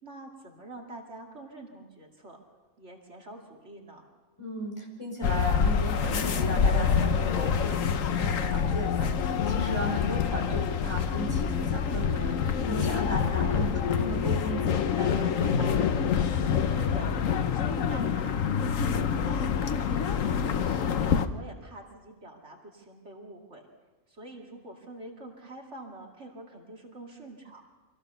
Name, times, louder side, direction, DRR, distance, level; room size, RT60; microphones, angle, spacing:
voice 1, 0.0-2.4 2.8-4.0 9.7-10.2 12.8-13.2 16.7-17.1 17.4-20.7 21.3-23.6 24.1-27.6, right 1 dB, 60° right, 1 dB, 2.6 m, -46 dB
voice 2, 4.4-15.8, right 1 dB, 20° left, -1 dB, 4.9 m, -36 dB
sound 1, 5.2-21.3, left 7 dB, 80° left, 1.3 m, -26 dB
25.0 x 16.0 x 6.8 m, 1.3 s
omnidirectional pair, 1.4 m